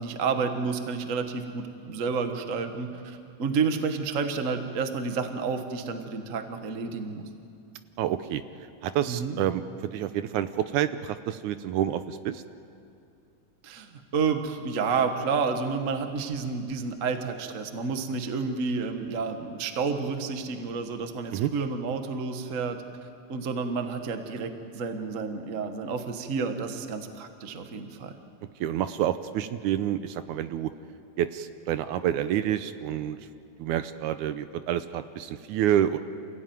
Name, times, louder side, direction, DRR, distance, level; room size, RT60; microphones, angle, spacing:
voice 1, 0.0-7.2 9.1-9.4 13.6-22.8 23.3-28.1, right 5 dB, 50° right, 6 dB, 0.9 m, -30 dB
voice 2, 8.0-8.4 8.8-9.6 9.9-12.4 21.3-21.5 28.6-30.7 31.2-33.2 33.6-36.0, right 11 dB, 75° right, 11 dB, 2.0 m, -28 dB
28.0 x 16.0 x 9.3 m, 2.5 s
omnidirectional pair, 3.7 m